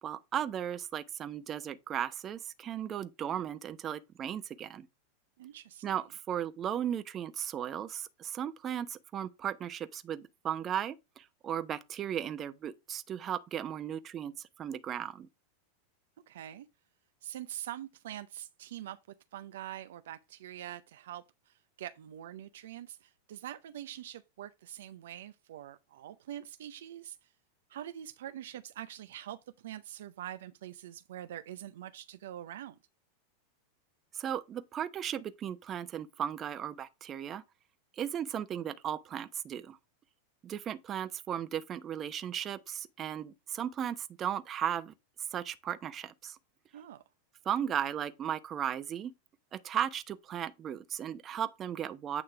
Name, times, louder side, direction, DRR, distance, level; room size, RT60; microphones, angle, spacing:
voice 1, 0.0-4.9 5.8-15.3 34.1-37.4 38.0-39.8 40.4-44.9 45.3-46.4 47.4-49.1 49.5-52.2, right 9 dB, 35° right, 0.8 m, -36 dB
voice 2, 5.4-5.8 16.3-16.7 17.2-19.0 19.3-27.2 27.7-32.8 46.7-47.0, right 12 dB, 75° right, 0.6 m, -44 dB
8.9 x 3.1 x 5.9 m
hypercardioid pair, 100°, 0 cm